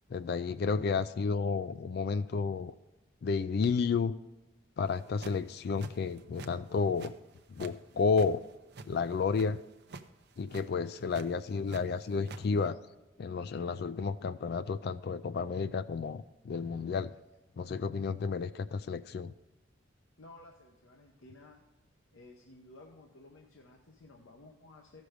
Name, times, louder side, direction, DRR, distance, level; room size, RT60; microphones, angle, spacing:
voice 1, 0.1-2.7 3.2-4.1 4.8-7.1 7.6-8.4 8.9-9.6 10.4-12.8 13.2-17.1 17.6-19.3, left 5 dB, 50° left, 15 dB, 0.3 m, -31 dB
sound 1, 4.9-5.5 5.8-6.5 6.8-7.8 8.0-9.5 9.8-10.1 10.4-10.6 11.1-11.8 12.1-12.4, right 3 dB, 55° right, 0.6 m, -46 dB
voice 2, 20.2-21.6 22.1-25.0, left 2 dB, 85° left, 1 dB, 0.9 m, -55 dB
14.5 x 6.2 x 5.0 m, 1.0 s
head